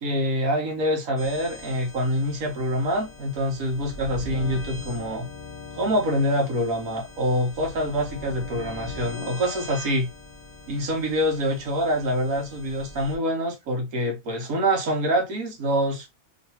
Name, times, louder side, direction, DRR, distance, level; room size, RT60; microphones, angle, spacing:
voice 1, 0.0-5.3 5.7-10.1 10.7-16.0, equal, 80° right, 1.5 m, -25 dB
sound 1, 1.2-13.2, left 3 dB, ahead, 1.7 m, -40 dB
3.2 x 2.9 x 2.8 m
omnidirectional pair, 1.5 m